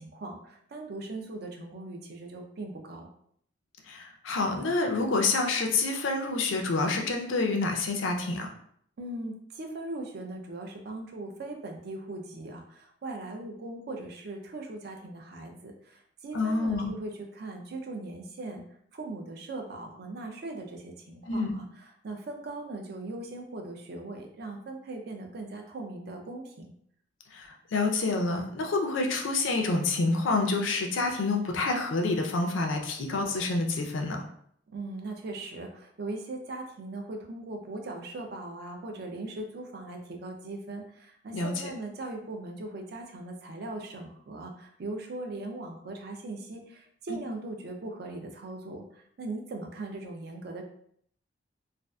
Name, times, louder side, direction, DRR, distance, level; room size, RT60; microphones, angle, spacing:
voice 1, 0.0-3.1 9.0-18.6 18.9-26.7 34.7-50.6, right 2 dB, 55° right, 3 dB, 0.4 m, -39 dB
voice 2, 3.9-8.5 16.3-16.9 21.3-21.6 27.3-34.2 41.3-41.7, left 3 dB, 80° left, 2 dB, 0.5 m, -28 dB
2.5 x 2.3 x 2.2 m, 0.66 s
head